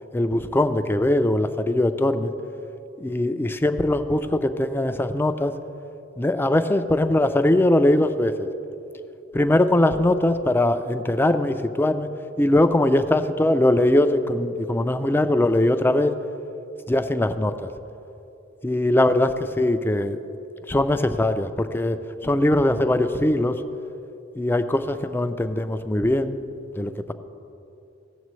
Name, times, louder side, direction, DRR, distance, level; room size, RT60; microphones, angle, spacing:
voice 1, 0.1-2.3 3.0-5.5 6.2-8.5 9.3-12.1 12.4-16.1 16.9-17.7 18.6-20.2 20.7-23.6 24.4-26.4 26.8-26.9, left 1 dB, 10° left, 9 dB, 0.3 m, -21 dB
17.5 x 7.3 x 3.1 m, 2.9 s
head